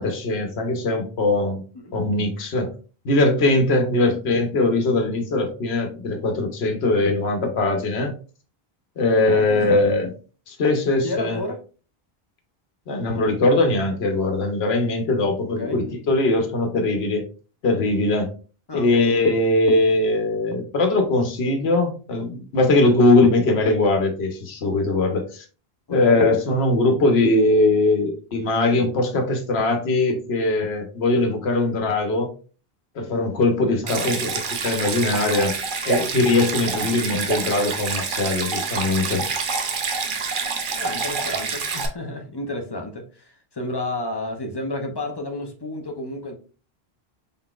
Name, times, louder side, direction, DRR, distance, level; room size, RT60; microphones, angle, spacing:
voice 1, 0.0-1.6 1.9-2.7 3.0-8.1 9.0-10.1 10.5-11.4 12.9-17.3 17.6-18.3 18.7-25.4 25.9-32.3 32.9-34.3 34.6-35.5 35.8-39.2, left 2 dB, 85° left, 1.1 m, -21 dB
voice 2, 9.3-9.9 11.0-11.6 15.6-15.8 18.7-19.1 25.9-26.3 33.8-34.2 40.8-46.4, left 2 dB, 30° left, 0.5 m, -31 dB
Stream, 33.9-41.9, right 5 dB, 60° right, 0.8 m, -27 dB
3.9 x 3.8 x 2.3 m
omnidirectional pair, 1.0 m